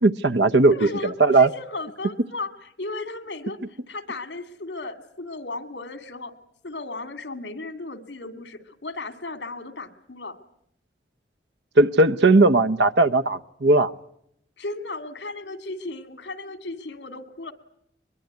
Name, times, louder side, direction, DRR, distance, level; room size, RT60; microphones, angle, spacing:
voice 1, 0.0-1.5 11.8-13.9, right 2 dB, 75° right, 12 dB, 0.9 m, -18 dB
voice 2, 0.7-2.5 2.8-6.3 6.6-10.4 14.6-17.5, left 2 dB, 80° left, 10 dB, 2.4 m, -35 dB
23.0 x 22.0 x 9.4 m, 0.74 s
head